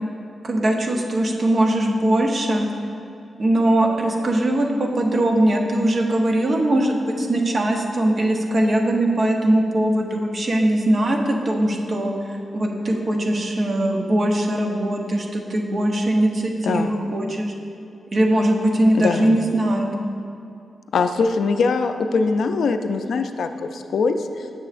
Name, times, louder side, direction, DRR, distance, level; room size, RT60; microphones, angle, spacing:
voice 1, 0.4-2.7 3.4-17.5 18.1-19.9, right 1 dB, 45° right, 1 dB, 0.7 m, -21 dB
voice 2, 18.9-19.4 20.9-24.5, left 4 dB, 75° left, 8 dB, 0.3 m, -22 dB
7.5 x 6.8 x 2.4 m, 2.6 s
wide cardioid pair, 120°, 0 cm